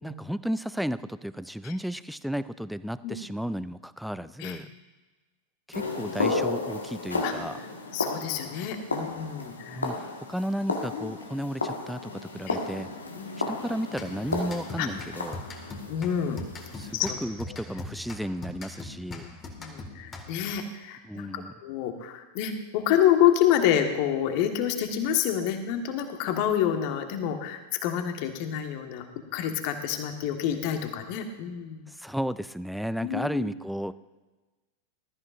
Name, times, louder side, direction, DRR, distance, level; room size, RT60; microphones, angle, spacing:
voice 1, 0.0-4.7 5.7-7.6 9.7-12.9 13.5-15.4 16.8-19.3 21.0-21.5 31.9-33.9, equal, ahead, 15 dB, 0.4 m, -33 dB
sound 1, 5.7-16.9, left 3 dB, 75° left, 1.6 m, -33 dB
voice 2, 7.9-9.9 10.9-11.2 12.5-12.6 13.2-13.3 14.8-14.9 15.9-16.4 16.9-17.2 19.1-29.1 29.3-31.9 33.0-33.5, left 10 dB, 45° left, 6 dB, 1.5 m, -28 dB
sound 2, 13.9-20.6, left 3 dB, 25° left, 1.9 m, -41 dB
20.0 x 13.5 x 2.6 m, 1.2 s
figure-of-eight pair, 90°, 0 cm